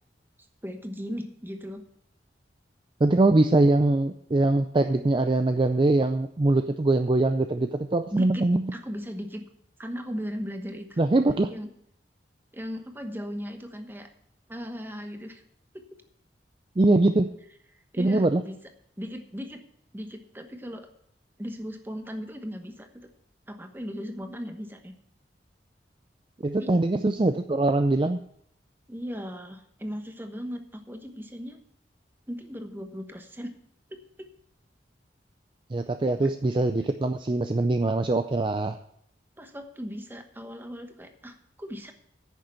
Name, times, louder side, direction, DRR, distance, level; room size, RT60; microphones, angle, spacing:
voice 1, 0.6-1.8 8.1-9.4 9.8-11.0 11.5-11.7 12.5-14.1 14.5-15.4 15.7-15.8 17.9-18.6 19.0-19.6 19.9-20.9 21.4-22.9 23.5-24.9 26.6-26.7 28.9-31.6 32.3-33.6 33.9-34.3 36.2-36.3 39.4-41.9, equal, 10° right, 6 dB, 1.1 m, -37 dB
voice 2, 3.0-8.6 11.0-11.5 16.8-17.3 18.0-18.4 26.4-28.2 35.7-38.8, right 2 dB, 30° right, 8 dB, 0.4 m, -22 dB
10.0 x 6.6 x 7.6 m, 0.71 s
head